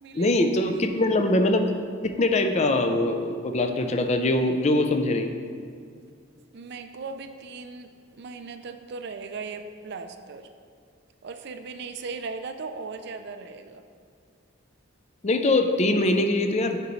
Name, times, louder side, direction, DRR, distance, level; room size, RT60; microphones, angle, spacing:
voice 1, 0.1-1.7 2.0-5.3 15.2-16.8, left 2 dB, 35° left, 6 dB, 0.5 m, -22 dB
voice 2, 6.5-10.5 11.2-13.8, right 4 dB, 55° right, 8 dB, 0.4 m, -38 dB
9.5 x 5.2 x 3.1 m, 2.2 s
head